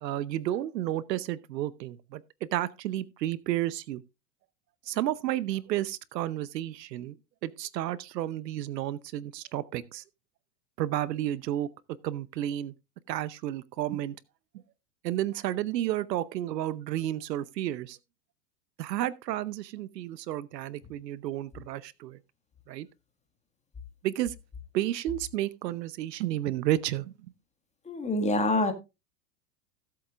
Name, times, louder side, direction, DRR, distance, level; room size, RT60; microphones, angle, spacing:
voice 1, 0.0-2.2 2.5-4.0 4.9-7.2 7.4-10.0 10.8-11.7 12.0-12.7 13.1-14.2 15.0-18.0 18.8-22.2 22.7-22.9 24.0-24.3 24.7-27.1, right 13 dB, 75° right, 0.9 m, -31 dB
voice 2, 27.9-28.7, left 2 dB, 15° left, 1.8 m, -26 dB
17.0 x 7.8 x 2.5 m
hypercardioid pair, 115°, 50 cm